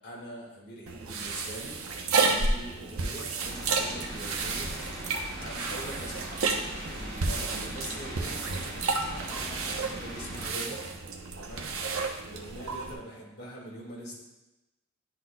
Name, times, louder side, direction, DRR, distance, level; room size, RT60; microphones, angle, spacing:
voice 1, 0.0-1.8 2.1-4.8 5.3-10.8 11.4-14.2, right 1 dB, 50° left, -4 dB, 1.8 m, -43 dB
sound 1, 0.9-12.9, right 4 dB, 85° right, 0.7 m, -32 dB
sound 2, 3.5-10.5, right 1 dB, 50° right, 1.9 m, -40 dB
11.0 x 4.0 x 2.3 m, 1.0 s
head